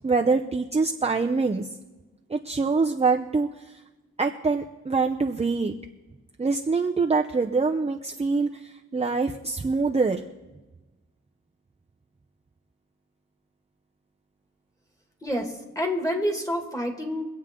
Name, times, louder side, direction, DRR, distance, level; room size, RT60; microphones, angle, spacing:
voice 1, 0.0-1.7 2.3-3.8 4.2-5.7 6.4-10.2, right 4 dB, 20° right, 2 dB, 0.7 m, -25 dB
voice 2, 15.2-17.2, equal, 10° left, 3 dB, 2.2 m, -28 dB
24.0 x 8.2 x 3.7 m, 1.1 s
wide cardioid pair, 105°, 29 cm